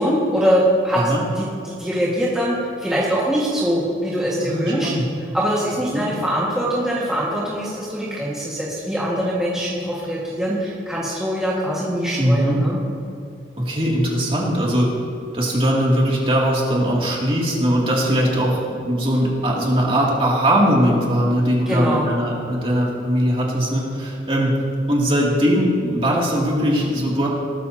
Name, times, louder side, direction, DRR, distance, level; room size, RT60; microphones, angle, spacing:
voice 1, 0.0-1.0 1.4-4.9 5.3-12.8 21.7-22.0, equal, 5° right, -8 dB, 1.7 m, -22 dB
voice 2, 4.4-5.1 5.9-6.0 12.2-12.6 13.6-14.9 15.3-24.6 24.9-27.3, equal, 30° right, -4 dB, 2.6 m, -20 dB
18.5 x 13.5 x 2.8 m, 2.4 s
head